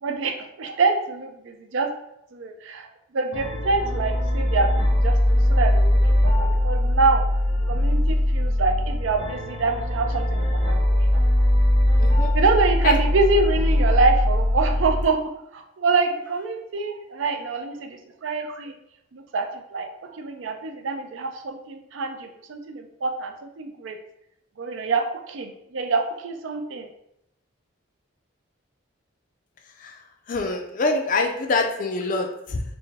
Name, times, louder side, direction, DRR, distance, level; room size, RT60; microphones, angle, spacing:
voice 1, 0.0-1.9 2.3-7.2 7.7-11.2 12.3-15.2 15.5-18.7 19.1-24.0 24.6-26.9, right 3 dB, 70° right, 5 dB, 0.4 m, -26 dB
sound 1, 3.3-15.0, left 1 dB, 35° right, 1.0 m, -21 dB
voice 2, 12.0-12.3 12.8-13.0 29.8-32.6, left 3 dB, 40° left, 3 dB, 0.4 m, -25 dB
4.3 x 2.1 x 3.3 m, 0.80 s
head